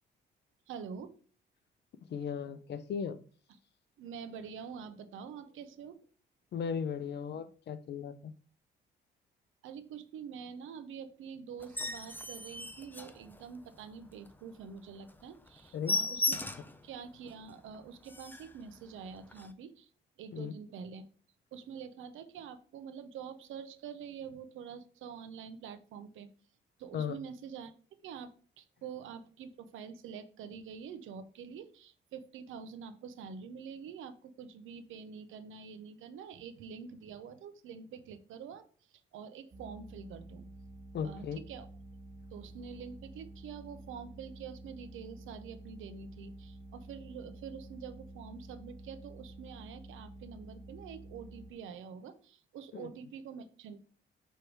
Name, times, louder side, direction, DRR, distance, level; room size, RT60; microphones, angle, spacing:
voice 1, 0.7-1.1 4.0-6.0 9.6-16.5 16.8-19.9 20.2-21.0 21.5-26.3 26.8-27.7 28.0-28.3 28.6-40.4 41.0-41.7 42.3-53.8, right 6 dB, 85° right, 10 dB, 0.8 m, -46 dB
voice 2, 2.1-3.2 6.5-8.3 15.7-16.0 20.3-20.5 26.9-27.2 40.9-41.4 52.7-52.9, left 7 dB, 60° left, 13 dB, 0.7 m, -36 dB
sound 1, 11.6-13.8 14.2-14.3 14.7-14.8 15.1-15.2 15.5-16.8 17.3-17.4 17.7-17.8 18.0-18.6 19.3-19.5, left 3 dB, 10° left, 0.6 m, -36 dB
sound 2, 39.5-51.5, right 1 dB, 25° right, 0.7 m, -50 dB
6.3 x 3.4 x 4.6 m, 0.42 s
cardioid pair, 90°, 20 cm